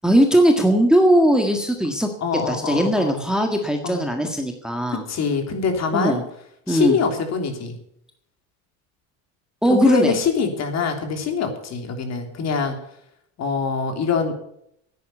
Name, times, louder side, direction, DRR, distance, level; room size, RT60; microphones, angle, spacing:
voice 1, 0.0-2.1 2.5-5.0 5.9-6.2 6.7-7.0 9.6-10.2, right 1 dB, ahead, 3 dB, 1.6 m, -19 dB
voice 2, 2.2-3.2 3.8-4.1 4.9-6.2 6.7-7.8 9.7-12.8 13.4-14.3, left 5 dB, 45° left, 5 dB, 3.3 m, -24 dB
10.5 x 9.4 x 9.1 m, 0.74 s
supercardioid pair, 115°, 37 cm